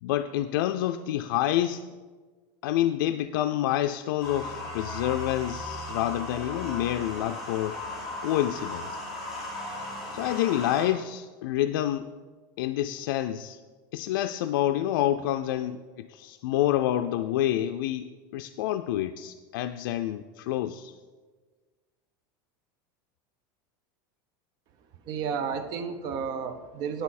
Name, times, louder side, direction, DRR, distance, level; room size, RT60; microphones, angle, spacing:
voice 1, 0.0-1.8 2.6-7.8 8.2-9.0 10.1-12.1 12.6-13.6 13.9-18.1 18.3-20.9, left 12 dB, 85° left, 8 dB, 0.4 m, -28 dB
sound 1, 4.2-10.9, left 2 dB, ahead, 3.5 m, -36 dB
voice 2, 25.1-27.0, right 6 dB, 40° right, 9 dB, 0.7 m, -32 dB
9.6 x 9.0 x 4.2 m, 1.4 s
supercardioid pair, 170°, 11 cm